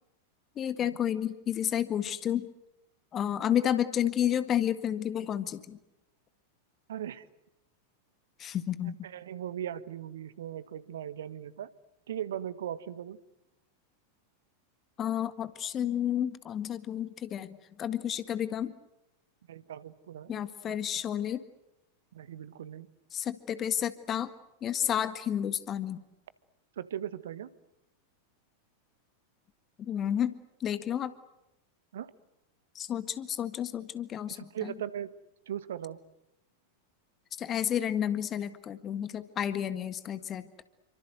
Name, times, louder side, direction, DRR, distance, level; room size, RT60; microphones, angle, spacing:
voice 1, 0.6-2.5 3.1-5.8 8.4-9.0 15.0-18.7 20.3-21.4 23.1-24.3 24.6-26.0 29.8-30.3 30.6-31.1 32.7-34.7 37.4-40.5, left 10 dB, 30° left, 12 dB, 1.7 m, -31 dB
voice 2, 6.9-7.3 9.0-11.7 12.1-13.2 19.5-20.4 20.7-20.8 22.1-22.9 26.8-27.5 31.9-32.1 34.3-35.1 35.5-36.0, right 10 dB, 60° right, 15 dB, 1.5 m, -38 dB
29.0 x 25.0 x 7.9 m, 0.87 s
figure-of-eight pair, 90°, 0 cm